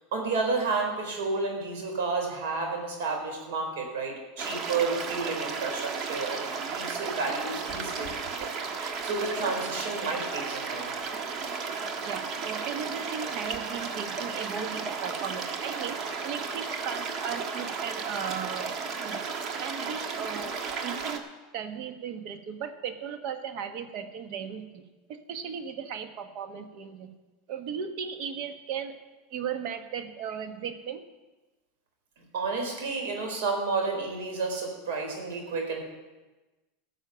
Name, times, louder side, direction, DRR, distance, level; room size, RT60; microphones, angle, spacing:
voice 1, 0.1-8.5 8.7-10.9 32.3-35.8, right 4 dB, 75° right, 2 dB, 4.2 m, -31 dB
sound 1, 4.4-21.2, right 5 dB, 40° right, 1.4 m, -34 dB
voice 2, 11.7-18.7 19.0-19.2 19.6-21.3 21.5-24.8 25.1-27.1 27.5-29.0 29.3-31.0, right 7 dB, 55° right, 7 dB, 1.4 m, -36 dB
13.5 x 6.4 x 8.8 m, 1.2 s
supercardioid pair, 125°, 0 cm